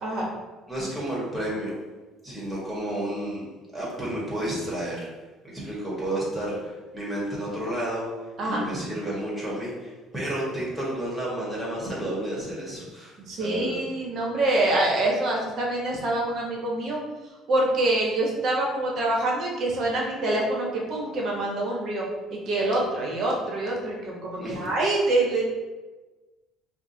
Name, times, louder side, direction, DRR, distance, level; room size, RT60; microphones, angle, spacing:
voice 1, 0.7-1.7 2.2-3.5 3.7-5.1 5.4-8.1 8.4-13.8 24.4-24.7, right 1 dB, 15° right, -6 dB, 1.5 m, -31 dB
voice 2, 13.3-17.0 17.5-22.0 22.3-25.4, right 2 dB, 55° right, -2 dB, 1.0 m, -25 dB
4.8 x 2.3 x 2.8 m, 1.2 s
cardioid pair, 105°, 0 cm